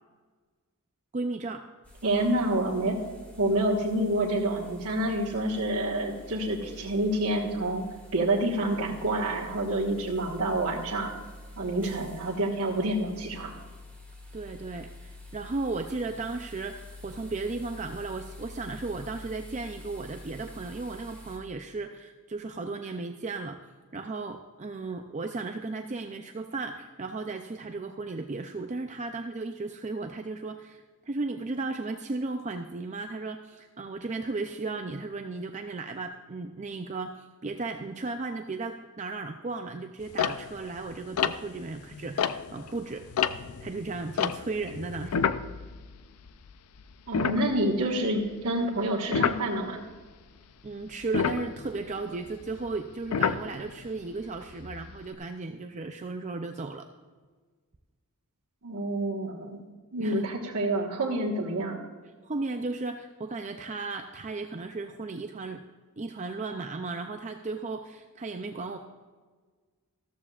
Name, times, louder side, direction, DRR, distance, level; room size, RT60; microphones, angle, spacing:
voice 1, 1.1-1.6 11.8-12.0 14.3-23.6 23.9-43.1 43.6-45.2 50.6-56.9 60.0-60.2 62.2-65.6 66.0-68.8, right 3 dB, 30° right, 5 dB, 0.5 m, -35 dB
sound 1, 1.8-21.4, left 1 dB, 5° left, 2.1 m, -48 dB
voice 2, 2.0-3.0 3.4-7.8 8.1-11.1 11.6-13.5 47.1-49.8 58.6-59.6 59.9-61.8, right 1 dB, 75° right, -6 dB, 1.5 m, -28 dB
sound 2, 40.1-42.7 43.0-46.5 46.8-46.9 47.1-48.0 49.1-49.5 51.0-53.9 54.5-55.1, left 7 dB, 75° left, 0.5 m, -30 dB
14.0 x 13.5 x 2.4 m, 1.5 s
head